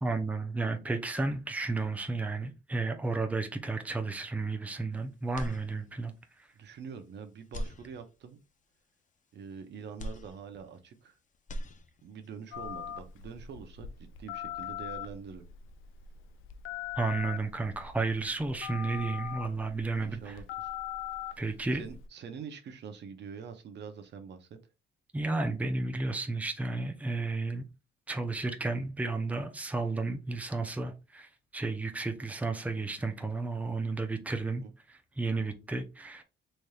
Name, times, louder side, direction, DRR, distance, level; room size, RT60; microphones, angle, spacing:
voice 1, 0.0-6.1 17.0-20.4 21.4-21.8 25.1-27.6 28.1-34.6 35.2-36.2, right 3 dB, 5° right, 0.6 m, -32 dB
sound 1, 5.3-6.2 6.7-6.8 7.4-8.5 10.0-11.1 11.3-12.3, equal, 40° left, 0.7 m, -41 dB
voice 2, 6.5-8.4 9.3-11.2 12.0-15.5 19.9-20.7 21.3-24.6 34.6-34.7, right 6 dB, 60° right, 0.8 m, -45 dB
Telephone, 12.5-22.1, left 10 dB, 90° left, 0.5 m, -41 dB
4.1 x 3.3 x 2.4 m
cardioid pair, 90°, 20 cm